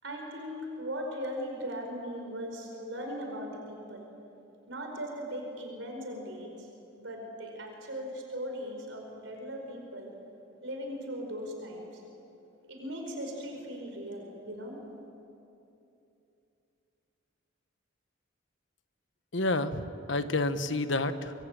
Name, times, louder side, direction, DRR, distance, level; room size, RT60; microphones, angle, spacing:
voice 1, 0.0-4.0 4.7-6.7 7.0-10.1 10.6-12.0 12.7-14.8, equal, 80° right, 2 dB, 5.0 m, -39 dB
voice 2, 19.3-21.3, left 2 dB, 70° left, 10 dB, 1.3 m, -29 dB
25.5 x 23.5 x 8.9 m, 2.8 s
head